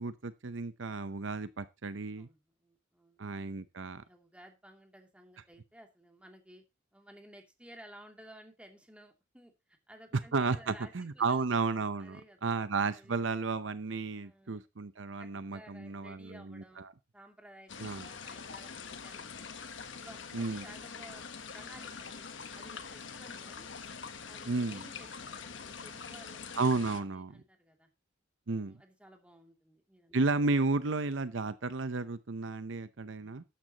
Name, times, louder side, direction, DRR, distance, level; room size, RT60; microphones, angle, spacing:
voice 1, 0.0-2.3 3.2-4.0 10.3-16.9 17.8-18.1 20.3-20.6 24.4-24.8 26.6-27.4 28.5-28.8 30.1-33.4, right 3 dB, 70° right, 0.7 m, -33 dB
voice 2, 2.2-3.2 4.0-6.6 6.9-11.5 12.0-12.5 12.9-13.3 14.1-14.6 15.2-16.9 17.1-19.5 19.9-21.2 21.5-22.2 22.5-23.7 24.2-27.9 28.6-30.2, right 1 dB, 5° right, 2.6 m, -56 dB
sound 1, 17.7-27.0, left 5 dB, 70° left, 1.2 m, -44 dB
13.0 x 10.5 x 2.9 m
head